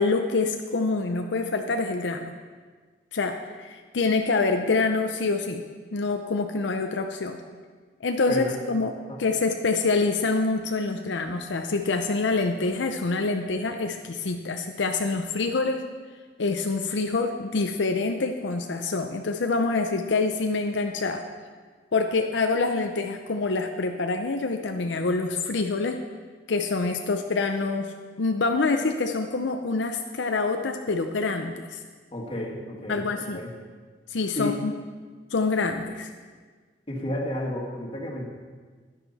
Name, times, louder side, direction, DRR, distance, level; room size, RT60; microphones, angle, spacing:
voice 1, 0.0-2.3 3.1-5.6 5.9-7.4 8.0-8.9 9.2-15.8 16.4-21.2 21.9-26.0 26.5-31.8 32.9-33.4 34.1-34.7 35.3-36.1, left 3 dB, 85° left, 5 dB, 0.6 m, -26 dB
voice 2, 32.1-33.5 34.3-34.6 36.9-38.3, left 1 dB, 30° left, -2 dB, 1.8 m, -31 dB
11.0 x 10.0 x 4.1 m, 1.5 s
head